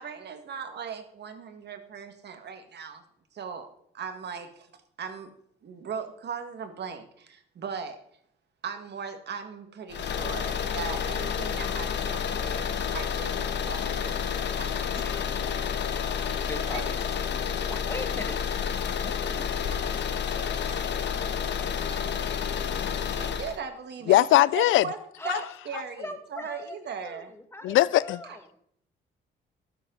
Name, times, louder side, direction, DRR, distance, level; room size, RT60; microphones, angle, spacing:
voice 1, 0.0-3.0 3.3-3.7 3.9-4.7 5.0-5.3 5.6-8.0 8.6-14.2 14.5-15.0 15.3-15.4 16.7-16.9 21.9-22.0 23.0-25.0 25.2-27.3 28.2-28.4, right 6 dB, 60° right, 1.9 m, -38 dB
sound 1, 9.9-23.6, left 7 dB, 60° left, 1.3 m, -30 dB
voice 2, 14.9-15.7 16.1-18.4 18.9-20.8 25.2-28.5, left 1 dB, 10° left, 1.9 m, -41 dB
voice 3, 24.1-24.8 25.3-25.4 27.6-28.2, left 15 dB, 80° left, 0.5 m, -20 dB
12.0 x 10.5 x 4.0 m
cardioid pair, 90°, 20 cm